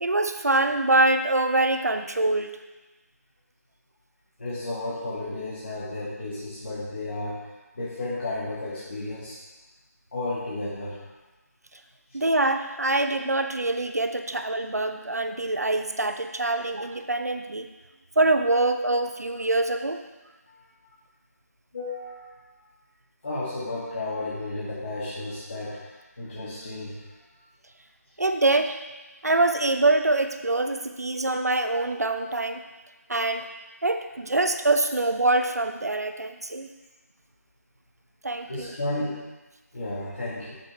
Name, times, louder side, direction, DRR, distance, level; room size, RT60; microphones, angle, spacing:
voice 1, 0.0-2.5 12.1-17.7 18.2-20.0 28.2-28.8 29.2-32.6 33.1-33.5 33.8-36.7 38.2-38.7, right 2 dB, 70° right, 7 dB, 0.8 m, -24 dB
voice 2, 4.4-7.5 7.8-9.4 10.1-11.0 21.7-22.3 23.2-27.0 38.5-39.2 39.7-40.6, left 2 dB, 40° left, -9 dB, 2.0 m, -33 dB
8.4 x 6.9 x 3.6 m, 1.1 s
figure-of-eight pair, 160°, 9 cm